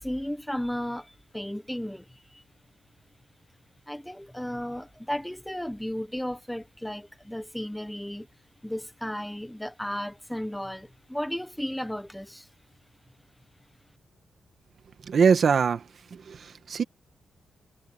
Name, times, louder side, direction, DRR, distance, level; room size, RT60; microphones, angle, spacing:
voice 1, 0.0-2.4 3.9-8.3 8.6-12.5, equal, 5° left, 1.0 m, -34 dB
voice 2, 15.0-16.8, right 6 dB, 45° right, 1.5 m, -23 dB
wide cardioid pair, 175°, 0 cm